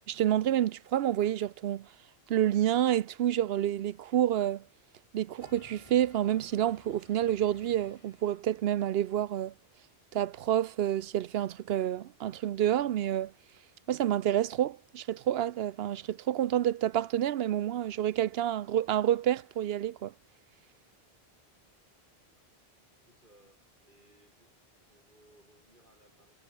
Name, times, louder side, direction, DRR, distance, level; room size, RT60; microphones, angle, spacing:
voice 1, 0.0-1.9 2.3-4.6 5.1-9.5 10.1-13.3 13.9-20.1, right 11 dB, 75° right, 0.8 m, -28 dB
sound 1, 5.4-8.6, left 2 dB, 30° left, 2.2 m, -57 dB
voice 2, 23.1-24.5 24.9-26.4, right 1 dB, 50° right, 7.9 m, -64 dB
omnidirectional pair, 1.0 m